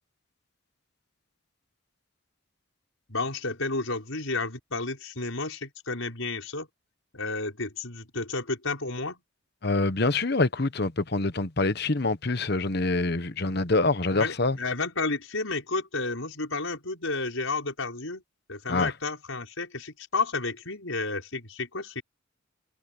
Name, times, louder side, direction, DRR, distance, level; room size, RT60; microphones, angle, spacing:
voice 1, 3.1-6.7 7.1-9.2 14.1-18.2 18.5-22.0, left 3 dB, 75° left, 5.6 m, -31 dB
voice 2, 9.6-14.6 18.7-18.9, left 2 dB, 50° left, 1.1 m, -25 dB
head